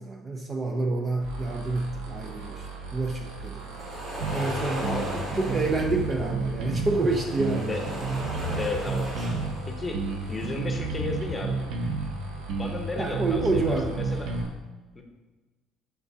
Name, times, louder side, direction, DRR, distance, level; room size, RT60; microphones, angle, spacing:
voice 1, 0.0-3.7 4.3-7.8 12.9-14.0, right 3 dB, 20° right, 3 dB, 0.5 m, -28 dB
sound 1, 1.2-14.5, right 5 dB, 85° right, 1.2 m, -40 dB
sound 2, 3.6-6.2 6.9-9.7 10.1-10.5, equal, 40° right, 2.2 m, -36 dB
sound 3, 4.2-4.5 4.8-7.0 7.4-9.6 9.9-12.1 12.5-14.4, right 3 dB, 60° right, 0.9 m, -30 dB
voice 2, 8.6-9.1 9.7-10.0 10.3-11.6 12.5-14.3 14.9-15.0, left 3 dB, 15° left, 3 dB, 0.9 m, -33 dB
11.5 x 3.9 x 2.8 m, 1.3 s
cardioid pair, 150°, 0 cm